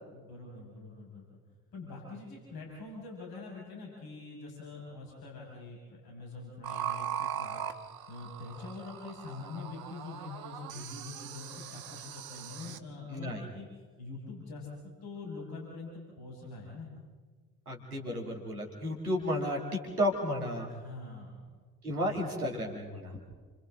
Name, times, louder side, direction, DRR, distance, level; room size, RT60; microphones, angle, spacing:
voice 1, 0.1-1.4 1.7-5.8 6.0-13.7 14.0-15.9 16.2-16.9 20.7-21.5 21.9-22.2, left 3 dB, 55° left, -2 dB, 6.2 m, -44 dB
sound 1, 6.6-12.8, right 9 dB, 55° right, 1.3 m, -40 dB
voice 2, 13.1-13.4 17.7-20.7 21.8-23.2, equal, 85° right, 1 dB, 2.6 m, -33 dB
29.0 x 25.5 x 3.9 m, 1.5 s
figure-of-eight pair, 45°, 44 cm